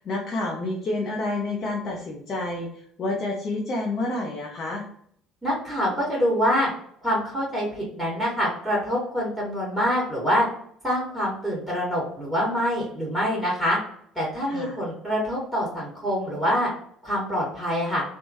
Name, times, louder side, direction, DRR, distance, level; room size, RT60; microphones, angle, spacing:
voice 1, 0.0-2.7 3.0-4.8 14.5-14.8, left 2 dB, 40° left, 0 dB, 0.6 m, -29 dB
voice 2, 5.4-6.7 7.0-10.5 10.8-13.8 14.1-16.7 17.0-18.0, equal, 5° right, -5 dB, 1.4 m, -25 dB
3.0 x 2.1 x 2.7 m, 0.67 s
figure-of-eight pair, 55°, 0 cm